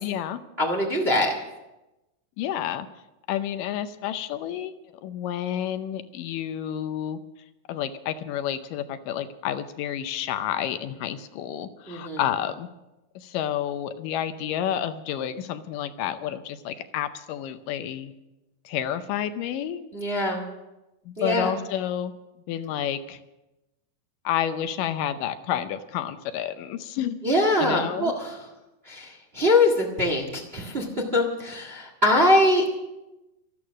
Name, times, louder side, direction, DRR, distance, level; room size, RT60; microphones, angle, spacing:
voice 1, 0.0-0.4 2.4-2.9 3.3-4.7 5.0-7.2 7.7-12.7 13.2-18.1 18.7-19.8 21.1-22.1 22.5-23.2 24.3-27.2 27.6-28.1, left 10 dB, 80° left, 11 dB, 2.2 m, -30 dB
voice 2, 0.6-1.3 11.9-12.2 19.9-20.5 21.2-21.5 27.2-28.4 28.8-30.9 31.1-32.7, left 1 dB, 30° right, 2 dB, 1.2 m, -23 dB
13.5 x 13.5 x 6.3 m, 1.0 s
omnidirectional pair, 4.0 m